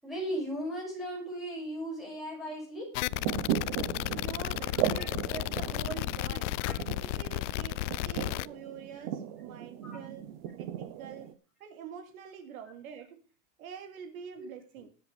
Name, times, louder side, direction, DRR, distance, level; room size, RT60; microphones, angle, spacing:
voice 1, 0.0-2.9 4.8-5.1 6.6-6.7 9.8-10.1 14.4-14.5, equal, ahead, -4 dB, 6.1 m, -37 dB
sound 1, 2.9-8.5, left 18 dB, 60° left, 0.5 m, -33 dB
sound 2, 3.1-11.3, right 11 dB, 40° right, 0.9 m, -36 dB
voice 2, 4.1-6.6 7.0-10.3 10.6-11.3 11.6-13.2 13.6-14.9, right 8 dB, 90° right, 6 dB, 2.8 m, -45 dB
20.0 x 8.1 x 3.4 m, 0.34 s
supercardioid pair, 175°, 41 cm